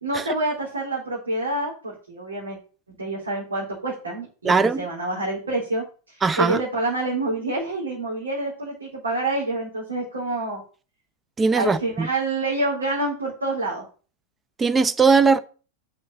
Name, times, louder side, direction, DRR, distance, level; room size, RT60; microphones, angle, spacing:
voice 1, 0.0-2.6 3.0-10.6 11.5-13.9, right 2 dB, 75° right, 3.7 m, -27 dB
voice 2, 4.4-4.9 6.2-6.6 11.4-12.1 14.6-15.4, right 4 dB, 15° right, 0.8 m, -19 dB
6.3 x 5.8 x 7.2 m
figure-of-eight pair, 90°, 0 cm